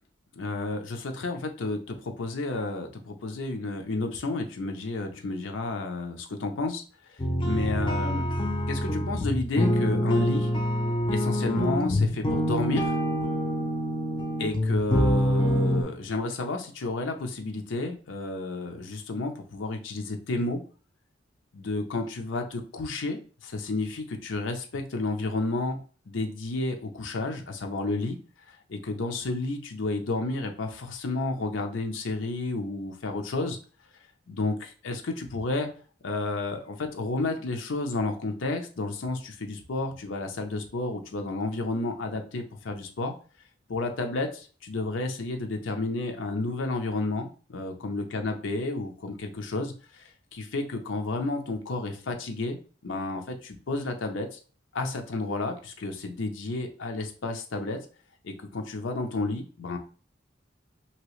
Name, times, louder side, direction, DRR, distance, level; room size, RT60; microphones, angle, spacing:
voice 1, 0.3-6.8 7.1-8.3 8.7-10.5 11.1-13.0 14.4-20.6 21.5-25.8 26.1-28.2 28.5-33.6 34.3-35.7 36.0-43.1 43.7-52.6 52.8-54.4 54.7-57.8 58.2-59.8, left 2 dB, 80° left, 4 dB, 0.6 m, -31 dB
sound 1, 7.2-15.8, equal, 25° left, 0.5 m, -26 dB
2.9 x 2.8 x 3.0 m, 0.38 s
head